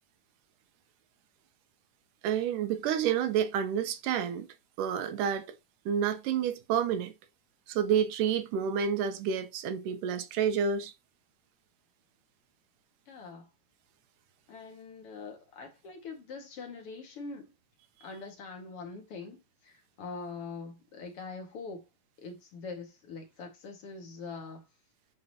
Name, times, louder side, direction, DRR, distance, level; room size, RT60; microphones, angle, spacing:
voice 1, 2.2-4.5 4.8-5.5 5.9-7.1 7.7-10.9, right 8 dB, 90° right, 2.5 m, -29 dB
voice 2, 13.1-13.5 14.5-17.5 18.0-21.8 22.2-24.6, left 4 dB, 50° left, 2.5 m, -43 dB
11.0 x 4.4 x 2.8 m
omnidirectional pair, 3.6 m